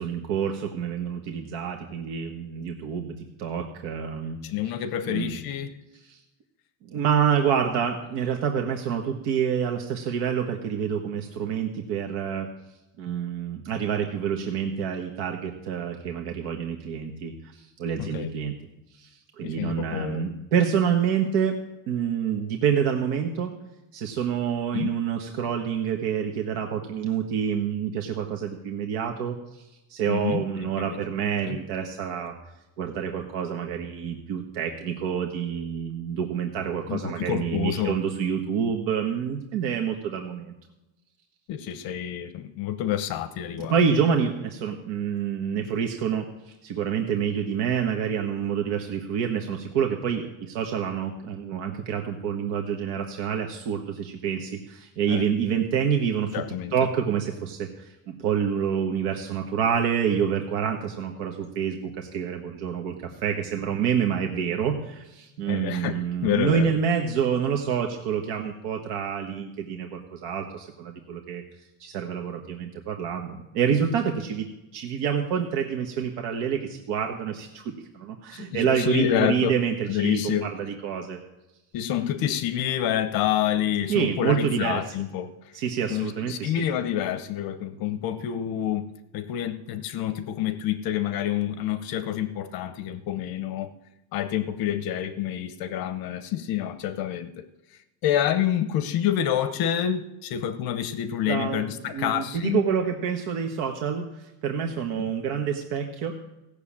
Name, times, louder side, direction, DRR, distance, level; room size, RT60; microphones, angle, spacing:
voice 1, 0.0-4.4 5.1-5.4 6.1-6.2 6.9-12.5 13.0-18.5 18.9-21.6 21.9-23.5 23.9-29.6 29.9-32.3 32.8-40.5 43.6-56.4 56.7-71.4 71.8-81.2 83.9-84.8 85.5-86.6 101.3-106.2, right 7 dB, 80° right, 3 dB, 1.5 m, -27 dB
voice 2, 4.4-5.7 18.0-18.3 19.4-20.2 24.7-24.9 30.1-31.0 31.4-31.6 36.9-38.0 41.5-43.7 55.1-55.3 56.3-56.7 65.5-66.0 66.2-66.7 78.3-79.5 79.9-80.4 81.7-85.3 85.9-93.7 94.1-97.4 98.0-102.6 105.0-105.1, left 10 dB, 55° left, 11 dB, 1.0 m, -28 dB
16.5 x 6.9 x 8.7 m, 0.99 s
cardioid pair, 180°, 43 cm